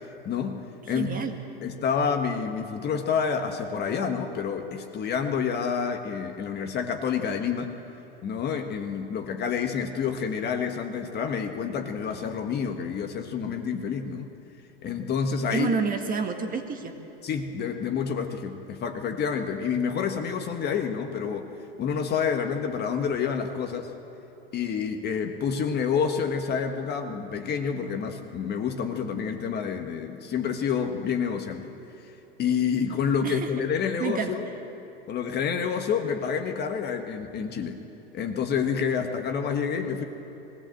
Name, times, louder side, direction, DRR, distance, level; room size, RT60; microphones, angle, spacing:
voice 1, 0.2-0.6 0.9-1.3 1.6-7.7 8.2-14.3 14.8-15.7 17.2-21.5 21.8-23.9 24.5-31.7 32.4-34.4 35.1-37.8 38.1-40.0, left 6 dB, 35° left, 5 dB, 1.4 m, -28 dB
voice 2, 0.9-1.3 15.5-16.9 33.2-33.5 34.0-34.3, right 5 dB, 30° right, 5 dB, 1.8 m, -28 dB
20.5 x 16.5 x 7.7 m, 2.9 s
hypercardioid pair, 110°, 30 cm